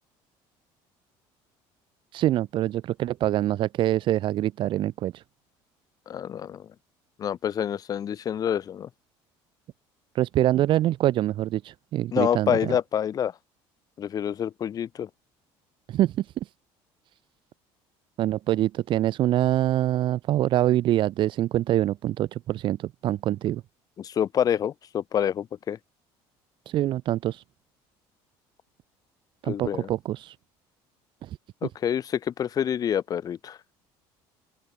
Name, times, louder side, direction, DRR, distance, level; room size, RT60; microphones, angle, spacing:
voice 1, 2.1-5.2 10.1-12.7 15.9-16.5 18.2-23.6 26.7-27.4 29.4-30.4 31.2-31.4, right 13 dB, 50° right, 4.1 m, -25 dB
voice 2, 6.1-6.7 7.2-8.9 12.1-13.3 14.0-15.1 24.0-25.8 29.4-29.9 31.6-33.6, left 9 dB, 35° left, 4.0 m, -27 dB
open air
cardioid pair, 145°, 10 cm